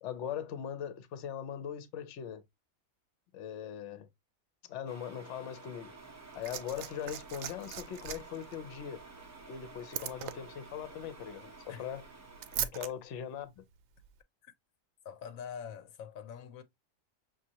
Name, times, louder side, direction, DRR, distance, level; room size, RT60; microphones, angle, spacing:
voice 1, 0.0-2.4 3.3-4.1 4.7-5.9 6.3-9.0 9.5-12.0 12.5-13.6, left 9 dB, 65° left, 1.0 m, -40 dB
sound 1, 4.9-12.7, right 3 dB, 20° right, 0.4 m, -52 dB
Liquid, 6.0-12.9 14.0-14.1, right 10 dB, 75° right, 0.9 m, -42 dB
voice 2, 15.0-16.6, left 8 dB, 90° left, 1.1 m, -44 dB
6.1 x 2.5 x 2.8 m
omnidirectional pair, 1.4 m